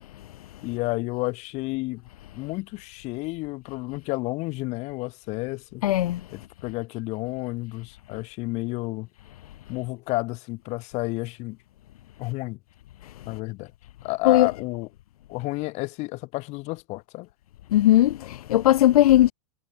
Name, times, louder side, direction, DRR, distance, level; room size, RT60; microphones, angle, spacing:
voice 1, 0.6-2.0 2.3-5.8 6.3-9.1 9.7-11.6 12.2-12.6 13.3-13.7 14.0-14.9 15.3-17.3, left 23 dB, 35° left, 1.9 m, -31 dB
voice 2, 5.8-6.2 14.2-14.5 17.7-19.3, left 13 dB, 75° left, 0.6 m, -18 dB
hypercardioid pair, 145°, 19 cm